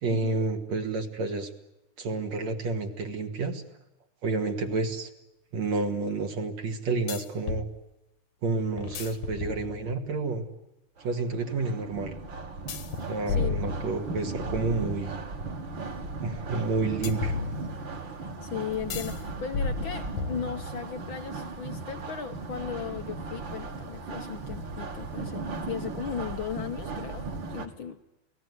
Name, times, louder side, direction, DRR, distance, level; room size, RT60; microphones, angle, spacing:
voice 1, 0.0-1.5 2.0-3.6 4.2-5.1 5.5-7.7 8.4-10.5 11.0-12.1 13.1-15.2 16.2-17.5, right 3 dB, 65° right, 3 dB, 3.3 m, -30 dB
sound 1, 4.7-4.8 7.1-7.7 8.8-10.1 12.7-14.4 17.0-18.0 18.9-19.2 19.5-20.9, left 5 dB, 75° left, 3.1 m, -33 dB
sound 2, 11.0-27.7, right 3 dB, 40° right, 2.4 m, -37 dB
voice 2, 18.4-28.0, left 8 dB, 60° left, 9 dB, 1.3 m, -37 dB
28.0 x 19.0 x 9.6 m, 0.92 s
omnidirectional pair, 3.5 m